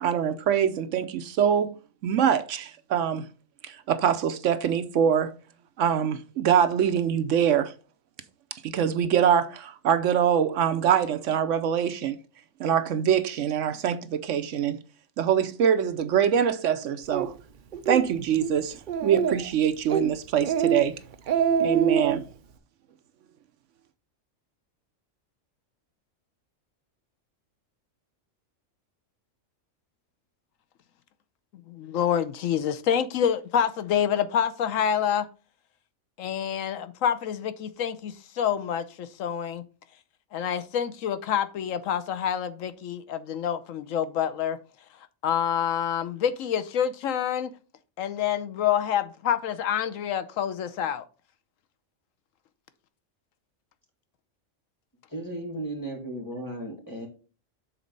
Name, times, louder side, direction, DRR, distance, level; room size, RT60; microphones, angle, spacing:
voice 1, 0.0-1.7 2.0-3.2 3.6-5.3 5.8-7.7 8.6-12.2 12.6-14.8 15.2-17.3 17.9-20.9 21.6-22.2, right 8 dB, 70° right, 1.0 m, -24 dB
Speech, 17.1-17.3 17.7-18.0 18.4-18.5 18.9-19.5 19.9-20.1 20.4-20.8 21.1-22.2, right 7 dB, 55° right, 0.6 m, -24 dB
voice 2, 31.7-35.3 36.2-39.6 40.3-44.6 45.2-47.5 48.0-51.0, left 9 dB, 80° left, 1.0 m, -27 dB
voice 3, 55.1-57.1, right 1 dB, 15° left, 2.1 m, -35 dB
7.2 x 4.2 x 5.2 m
omnidirectional pair, 1.3 m